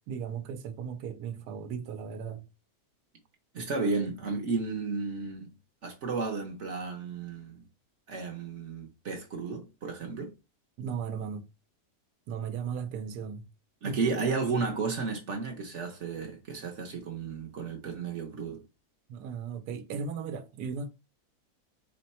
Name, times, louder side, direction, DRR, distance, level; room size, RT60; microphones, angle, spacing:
voice 1, 0.1-2.5 10.8-11.4 12.3-13.5 13.9-14.0 19.1-20.9, right 6 dB, 85° right, 1.2 m, -36 dB
voice 2, 3.5-5.5 5.8-7.6 8.1-10.3 13.8-18.6, right 4 dB, 55° right, 1.0 m, -33 dB
4.5 x 2.1 x 4.1 m
omnidirectional pair, 1.7 m